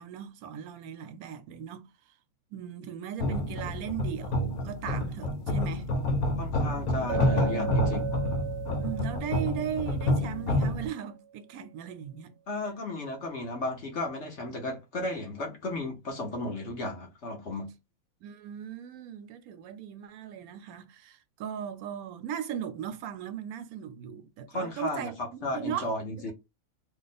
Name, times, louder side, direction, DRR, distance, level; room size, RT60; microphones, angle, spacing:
voice 1, 0.0-1.9 2.5-5.9 8.8-12.3 18.2-25.9 26.2-26.3, right 9 dB, 80° right, 1.1 m, -38 dB
sound 1, 3.2-10.9, left 1 dB, 75° left, 1.3 m, -28 dB
voice 2, 6.4-8.1 12.5-17.7 24.5-26.3, left 1 dB, 55° left, 1.1 m, -34 dB
Chink clink, 7.1-11.1, right 8 dB, 60° right, 0.8 m, -37 dB
3.0 x 2.1 x 4.0 m
omnidirectional pair, 1.5 m